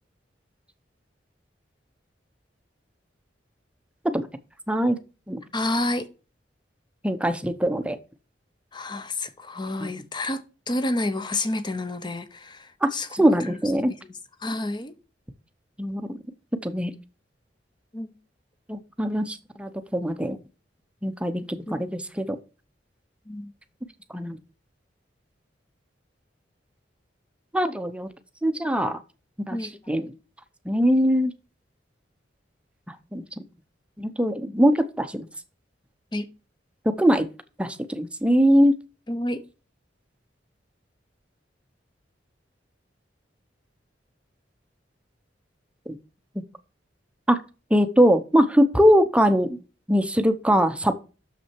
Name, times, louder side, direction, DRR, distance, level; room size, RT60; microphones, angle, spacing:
voice 1, 4.7-5.0 5.3-5.4 7.0-8.0 9.8-9.9 12.8-13.9 15.8-16.2 16.6-16.9 18.7-20.4 21.0-21.4 21.7-22.4 24.1-24.4 27.5-28.1 28.4-29.0 29.5-29.6 29.9-30.1 30.7-31.3 32.9-33.2 34.0-35.3 36.9-37.3 37.6-38.7 47.3-47.4 47.7-49.6 49.9-50.9, equal, 5° right, 0.7 m, -22 dB
voice 2, 5.5-6.1 8.7-13.1 13.4-13.5 13.9-14.0 14.4-14.9 17.9-18.1 21.7-21.8 23.3-23.5 29.5-29.8 36.1-36.3 39.1-39.4, left 1 dB, 25° left, 0.9 m, -29 dB
6.7 x 6.0 x 4.5 m
head